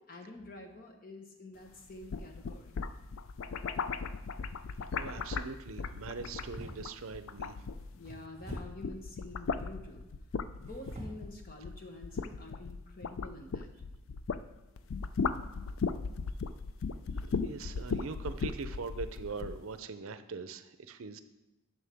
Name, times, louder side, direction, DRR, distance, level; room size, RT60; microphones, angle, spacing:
voice 1, 0.0-2.8 7.9-10.1 10.6-13.7, left 2 dB, 40° left, 3 dB, 1.1 m, -48 dB
sound 1, 1.9-8.1 8.4-14.5 14.8-19.6, left 5 dB, 65° left, 0.4 m, -37 dB
sound 2, 4.9-5.2 6.2-7.2 8.0-8.9 10.5-11.3 11.9-12.0 12.5-12.7, right 1 dB, 30° right, 1.6 m, -47 dB
voice 2, 5.0-7.6 17.4-21.2, right 4 dB, 70° right, 11 dB, 0.6 m, -42 dB
11.5 x 6.1 x 3.5 m, 1.0 s
head